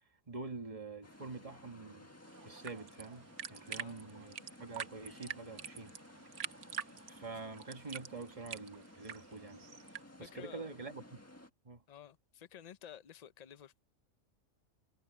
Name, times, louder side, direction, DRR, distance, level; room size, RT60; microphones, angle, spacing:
voice 1, 0.3-2.1 2.4-5.9 6.5-6.6 7.1-9.6 10.2-11.2 11.6-11.8, right 3 dB, 25° right, 1.5 m, -46 dB
sound 1, 1.0-11.5, left 1 dB, 10° left, 1.7 m, -57 dB
sound 2, 2.2-10.0, right 8 dB, 65° right, 1.2 m, -47 dB
voice 2, 3.7-4.1 10.2-10.8 11.9-13.8, left 9 dB, 45° left, 0.6 m, -53 dB
omnidirectional pair, 1.4 m